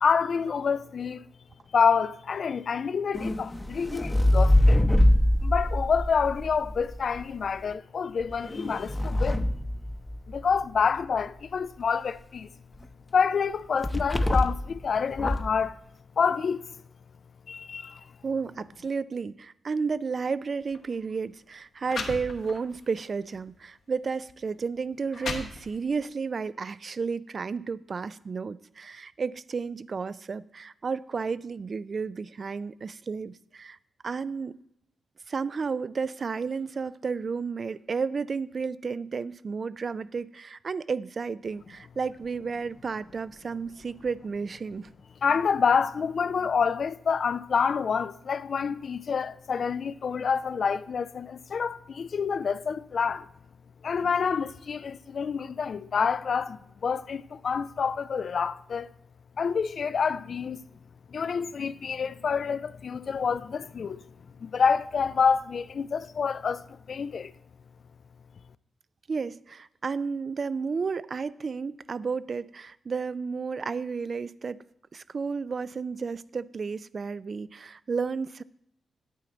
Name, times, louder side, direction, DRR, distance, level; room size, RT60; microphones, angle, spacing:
voice 1, 0.0-1.2 1.7-4.8 5.4-9.5 10.3-12.5 13.1-15.8 16.2-16.6 17.5-18.0 45.2-53.3 53.8-58.9 59.4-60.6 61.1-64.0 64.4-67.3, left 6 dB, 65° left, 0.4 m, -27 dB
sound 1, 3.1-7.2 8.2-10.5 13.8-14.7 15.1-15.6, left 1 dB, 15° left, 0.7 m, -24 dB
voice 2, 18.2-33.8 34.0-34.5 35.3-44.9 69.1-74.6 74.9-78.4, right 5 dB, 55° right, 0.3 m, -32 dB
sound 2, 20.6-20.8 21.5-21.6 21.9-22.8 23.3-23.5 24.3-24.4 24.9-26.0, left 4 dB, 80° left, 1.3 m, -36 dB
9.2 x 8.6 x 3.9 m
cardioid pair, 60°, 0 cm